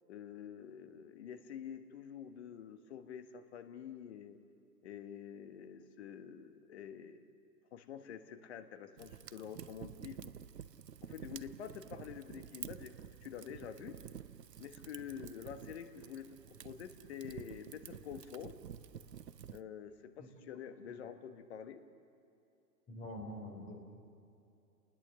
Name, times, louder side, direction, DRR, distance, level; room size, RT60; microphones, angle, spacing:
voice 1, 0.1-4.4 4.8-7.3 7.7-10.3 11.0-12.9 13.2-14.0 14.6-18.6 19.5-21.8, left 8 dB, 40° left, 9 dB, 1.6 m, -47 dB
Fire, 9.0-19.6, right 8 dB, 75° right, 0.8 m, -50 dB
voice 2, 22.9-23.8, left 1 dB, 15° left, 3 dB, 3.8 m, -45 dB
29.5 x 20.0 x 6.9 m, 2.6 s
figure-of-eight pair, 120°, 50 cm